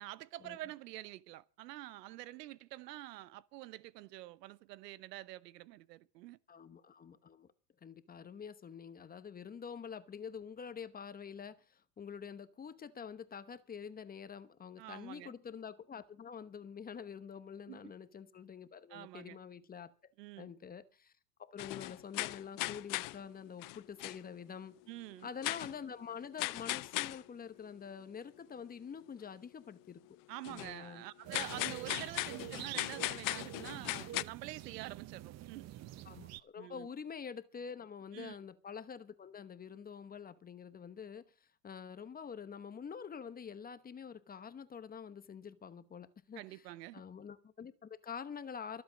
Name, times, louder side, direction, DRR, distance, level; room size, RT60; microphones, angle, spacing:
voice 1, 0.0-6.4 14.8-15.3 17.7-17.9 18.9-19.4 20.2-20.5 24.9-25.3 30.3-35.7 36.6-36.9 38.1-38.4 46.4-47.0, right 16 dB, 85° right, 0.9 m, -47 dB
voice 2, 6.5-7.5 7.8-19.9 20.4-21.1 21.4-24.7 25.2-30.0 30.5-31.0 36.1-41.2 41.6-46.6 46.9-48.8, left 7 dB, 20° left, 1.0 m, -47 dB
sound 1, 21.6-23.2 23.6-24.2 25.4-25.7 26.4-27.2 30.4-30.7 31.3-34.2, left 22 dB, 45° left, 0.6 m, -38 dB
sound 2, 31.2-36.4, right 14 dB, 35° right, 0.7 m, -47 dB
23.5 x 8.0 x 5.1 m
supercardioid pair, 125°, 48 cm